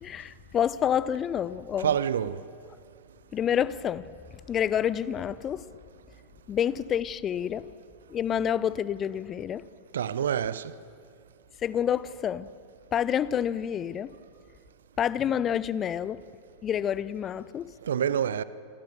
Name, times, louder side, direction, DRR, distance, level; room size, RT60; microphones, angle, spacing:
voice 1, 0.0-2.0 3.3-5.7 6.5-7.7 8.1-9.7 11.6-12.5 12.9-14.1 15.0-16.2 16.6-17.8, left 9 dB, 25° left, 0.7 m, -28 dB
voice 2, 1.8-2.4 9.9-10.7 17.8-18.4, right 8 dB, 65° right, 0.8 m, -27 dB
28.0 x 25.0 x 6.7 m
figure-of-eight pair, 90°, 0 cm